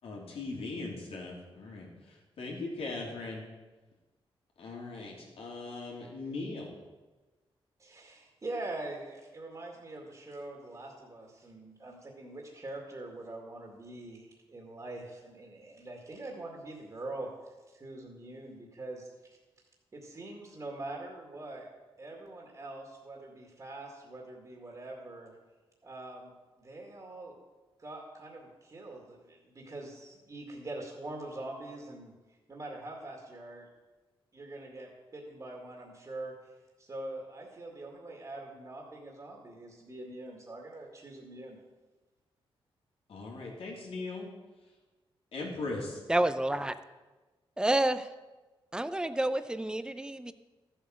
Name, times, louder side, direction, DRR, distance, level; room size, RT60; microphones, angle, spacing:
voice 1, 0.0-3.4 4.6-6.7 43.1-44.3 45.3-46.0, left 3 dB, 75° left, -2 dB, 3.4 m, -39 dB
voice 2, 7.8-17.3 17.7-19.1 19.9-21.7 22.0-25.4 25.8-26.3 26.6-27.4 27.8-32.1 32.5-33.7 34.3-36.4 36.8-41.6, right 2 dB, 35° right, -1 dB, 2.2 m, -43 dB
voice 3, 46.1-46.7 47.6-48.1 48.7-50.3, right 1 dB, 10° right, 12 dB, 0.6 m, -29 dB
13.5 x 8.0 x 6.3 m, 1.2 s
cardioid pair, 105°, 10 cm